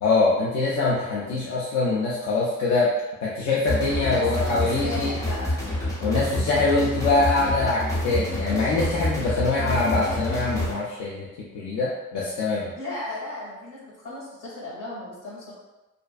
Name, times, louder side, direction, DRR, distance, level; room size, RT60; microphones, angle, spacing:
voice 1, 0.0-2.9 3.2-5.1 6.0-11.3 11.5-12.7, left 3 dB, 65° left, -5 dB, 0.5 m, -24 dB
sound 1, 3.7-10.7, left 1 dB, 10° left, 0.6 m, -28 dB
voice 2, 3.9-6.0 12.8-15.5, left 2 dB, 80° left, -7 dB, 1.2 m, -36 dB
2.5 x 2.1 x 2.3 m, 1.1 s
cardioid pair, 90°, 30 cm